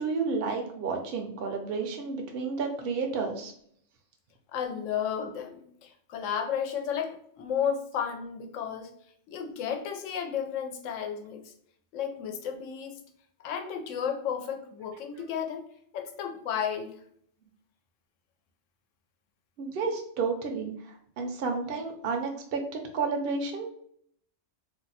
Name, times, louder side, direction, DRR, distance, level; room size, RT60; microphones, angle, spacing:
voice 1, 0.0-3.5 19.6-23.7, right 4 dB, 60° right, 3 dB, 0.7 m, -31 dB
voice 2, 4.5-8.9 9.3-11.5 11.9-13.0 13.4-15.7 15.9-17.0, left 8 dB, 90° left, 5 dB, 0.9 m, -33 dB
2.5 x 2.1 x 4.0 m, 0.64 s
omnidirectional pair, 1.3 m